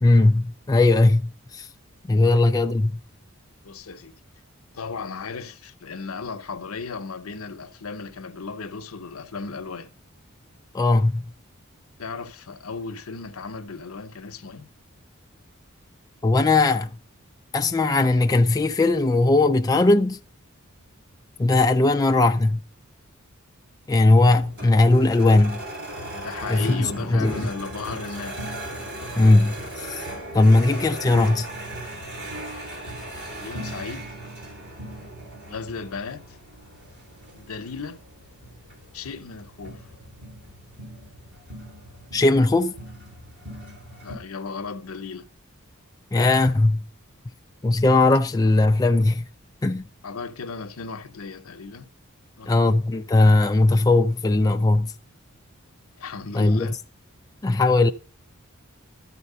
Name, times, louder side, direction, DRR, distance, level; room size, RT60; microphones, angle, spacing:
voice 1, 0.0-1.7 2.1-3.0 10.7-11.2 16.2-16.9 17.5-20.2 21.4-22.6 23.9-25.6 26.5-27.5 29.2-30.0 30.3-31.5 42.1-42.7 46.1-46.8 47.6-49.2 49.6-49.9 52.5-54.9 56.3-56.7 57.4-57.9, left 2 dB, 15° left, 0.3 m, -19 dB
voice 2, 3.6-4.1 4.7-9.9 12.0-14.7 26.1-28.6 32.2-32.6 33.4-34.2 35.5-36.4 37.3-38.0 38.9-39.9 44.0-45.3 50.0-51.9 52.4-52.5 56.0-56.8, left 4 dB, 75° left, 0.8 m, -35 dB
sound 1, 24.3-44.1, right 1 dB, 55° right, 3.7 m, -38 dB
13.0 x 4.3 x 5.5 m
head